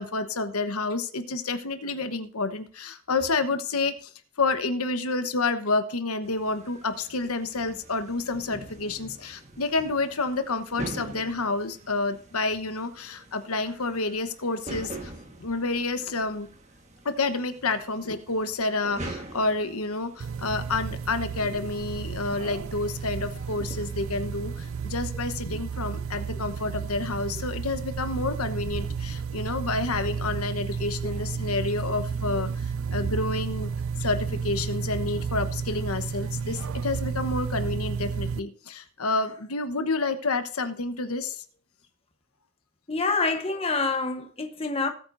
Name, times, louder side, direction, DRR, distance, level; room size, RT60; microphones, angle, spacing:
voice 1, 0.0-4.1 4.4-15.1 15.4-16.5 17.0-33.7 34.0-41.4, left 3 dB, 85° left, 1.2 m, -29 dB
sound 1, 6.2-24.9, right 2 dB, 30° right, 1.6 m, -45 dB
sound 2, 20.2-38.4, right 6 dB, 70° right, 0.4 m, -32 dB
voice 2, 42.9-44.9, left 3 dB, 25° left, 1.1 m, -27 dB
18.5 x 8.8 x 2.7 m
head